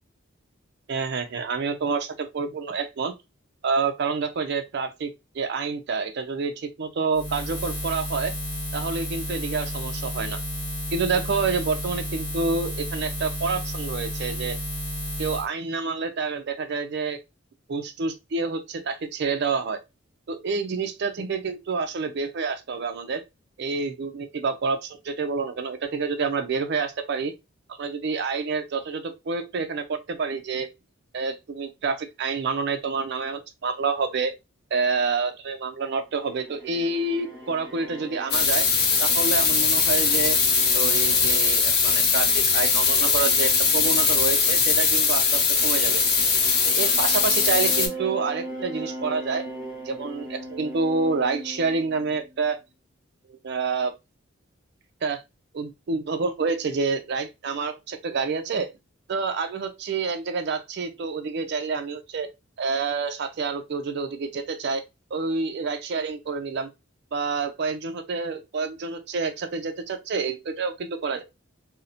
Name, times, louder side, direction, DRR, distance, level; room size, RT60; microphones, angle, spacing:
voice 1, 0.9-3.1 3.6-8.3 8.7-10.4 10.9-14.6 15.2-17.2 17.7-19.8 20.3-23.2 23.6-27.3 27.8-30.7 31.1-34.3 34.7-38.7 39.0-40.4 40.7-46.0 46.7-49.4 49.9-52.6 53.3-53.9 55.0-55.2 55.5-58.7 59.1-62.3 62.6-64.8 65.1-66.7 67.1-71.2, right 4 dB, 55° right, 0.4 m, -28 dB
Buzz, 7.1-15.5, equal, 25° left, 1.0 m, -32 dB
sound 1, 36.2-52.5, right 1 dB, 10° right, 1.1 m, -40 dB
sound 2, 38.3-47.9, left 5 dB, 55° left, 0.6 m, -21 dB
2.8 x 2.0 x 2.4 m
head